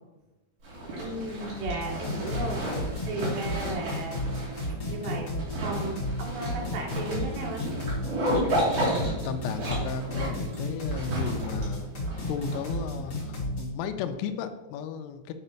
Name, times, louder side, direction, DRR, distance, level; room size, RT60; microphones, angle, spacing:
Zipper (clothing), 0.6-13.1, right 1 dB, 40° right, 3.7 m, -33 dB
voice 1, 1.0-2.6 3.1-4.3 4.9-5.3 5.6-7.7, right 2 dB, 80° right, -1 dB, 4.2 m, -34 dB
sound 1, 1.6-13.6, left 1 dB, 45° left, 1.3 m, -33 dB
sound 2, 1.8-12.0, right 1 dB, 60° right, 4.9 m, -47 dB
voice 2, 8.9-11.9 12.3-15.3, left 7 dB, 85° left, 9 dB, 3.0 m, -35 dB
10.0 x 4.0 x 5.6 m, 1.2 s
omnidirectional pair, 5.9 m